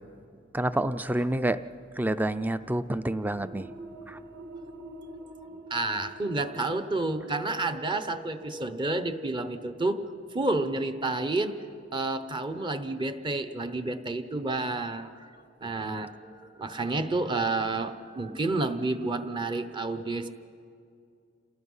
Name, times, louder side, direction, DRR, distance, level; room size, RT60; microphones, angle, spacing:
voice 1, 0.5-1.6 2.0-3.7 4.1-4.2, right 1 dB, 10° right, 13 dB, 0.4 m, -28 dB
sound 1, 2.5-13.7, right 1 dB, 55° right, 1.4 m, -49 dB
voice 2, 5.4-11.6 11.9-15.3 15.6-20.3, right 2 dB, 25° right, 10 dB, 0.8 m, -30 dB
28.0 x 18.5 x 5.6 m, 2.5 s
head